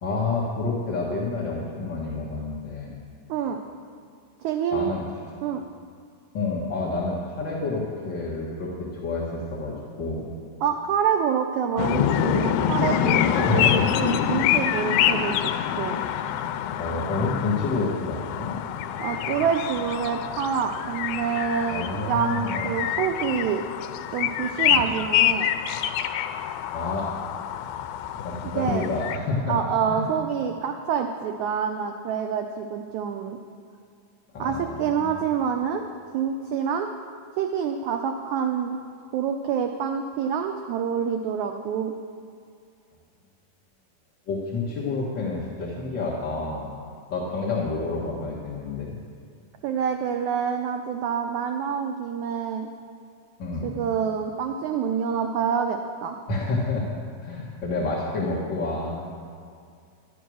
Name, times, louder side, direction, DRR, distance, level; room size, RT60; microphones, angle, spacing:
voice 1, 0.0-2.9 4.7-5.0 6.3-10.3 13.3-13.9 16.8-18.6 21.7-22.7 24.7-24.8 26.7-27.1 28.2-29.5 29.9-30.0 34.3-35.2 44.3-46.8 47.1-49.0 53.4-53.7 56.3-59.1, left 3 dB, 50° left, -5 dB, 1.3 m, -29 dB
voice 2, 3.3-3.6 4.4-4.9 5.4-5.6 10.6-15.4 15.8-16.0 19.0-23.6 24.1-25.5 28.5-28.8 29.5-33.4 34.4-35.8 36.1-36.9 37.4-38.8 39.1-41.9 49.6-52.7 53.6-56.2, right 7 dB, 85° right, 5 dB, 1.7 m, -27 dB
sound 1, 11.8-29.2, left 10 dB, 90° left, 2.4 m, -26 dB
11.5 x 11.0 x 6.2 m, 2.3 s
omnidirectional pair, 4.1 m